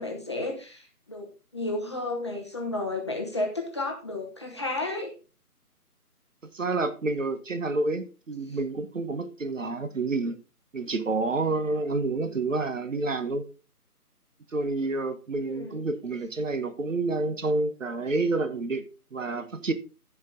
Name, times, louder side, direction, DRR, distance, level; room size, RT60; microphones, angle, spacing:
voice 1, 0.0-5.1 8.5-8.6 15.4-15.8, left 2 dB, 20° left, 1.0 m, -32 dB
voice 2, 6.5-10.4 10.7-13.4 14.5-18.8 19.1-19.7, right 3 dB, 55° right, 1.2 m, -29 dB
15.0 x 5.0 x 3.8 m
figure-of-eight pair, 160°, 46 cm